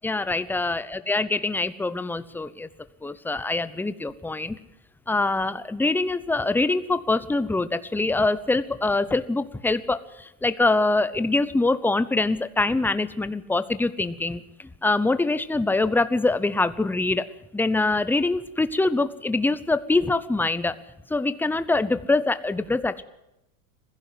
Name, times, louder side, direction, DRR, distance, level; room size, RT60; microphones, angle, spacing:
voice 1, 0.0-2.7 3.0-4.6 5.1-17.3 17.5-20.8 21.1-23.0, left 2 dB, 5° left, 14 dB, 0.8 m, -24 dB
22.0 x 15.5 x 7.7 m, 0.90 s
supercardioid pair, 130°, 43 cm